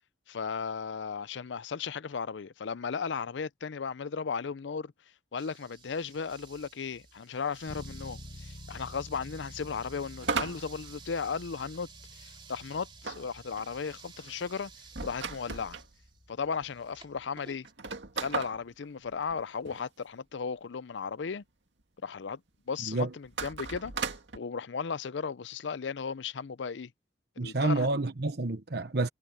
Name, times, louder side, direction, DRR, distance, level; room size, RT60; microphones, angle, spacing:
voice 1, 0.3-4.9 5.3-11.9 12.1-14.7 15.0-15.8 16.3-17.7 18.2-21.4 22.0-22.4 22.7-26.9 27.4-27.9, left 5 dB, 80° left, 0.5 m, -35 dB
sound 1, 5.4-17.7, right 5 dB, 30° right, 2.9 m, -54 dB
Bass guitar, 7.7-17.4, left 1 dB, 45° left, 1.2 m, -50 dB
sound 2, 10.2-11.8 13.0-15.9 16.6-16.7 16.9-17.0 17.6-19.8 23.2-24.4, right 4 dB, 80° right, 2.1 m, -36 dB
voice 2, 27.4-29.1, right 2 dB, 60° right, 1.1 m, -29 dB
head